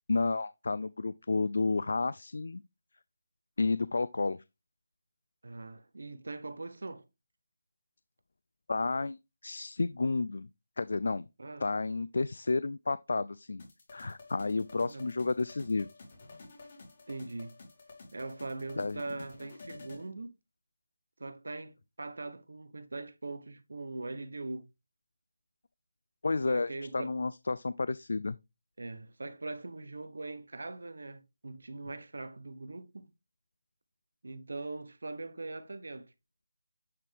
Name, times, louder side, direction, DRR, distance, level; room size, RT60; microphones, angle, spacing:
voice 1, 0.1-2.6 3.6-4.4 8.7-10.5 10.8-11.3 11.6-13.6 13.9-15.9 18.8-19.0 26.2-28.4, left 3 dB, 65° left, 0.3 m, -31 dB
voice 2, 5.4-7.1 11.4-11.6 14.9-15.1 17.1-17.6 18.1-20.3 21.2-24.7 26.5-27.2 28.8-33.1 34.2-36.1, right 2 dB, 75° right, 1.1 m, -41 dB
sound 1, 13.6-20.1, left 3 dB, 35° left, 2.5 m, -52 dB
8.6 x 3.4 x 3.4 m
figure-of-eight pair, 175°, 0 cm